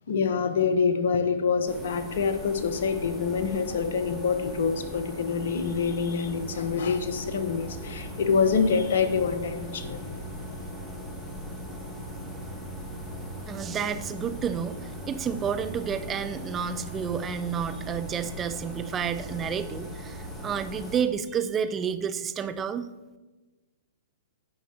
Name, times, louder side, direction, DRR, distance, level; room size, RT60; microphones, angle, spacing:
voice 1, 0.1-10.7, left 5 dB, 60° left, 9 dB, 1.0 m, -26 dB
sound 1, 1.7-21.0, equal, 5° left, 1.5 m, -40 dB
sound 2, 6.9-20.6, right 1 dB, 90° left, 1.2 m, -44 dB
voice 2, 13.5-22.9, right 7 dB, 20° right, 10 dB, 0.5 m, -30 dB
16.0 x 5.7 x 2.9 m, 1.2 s
figure-of-eight pair, 110°, 0 cm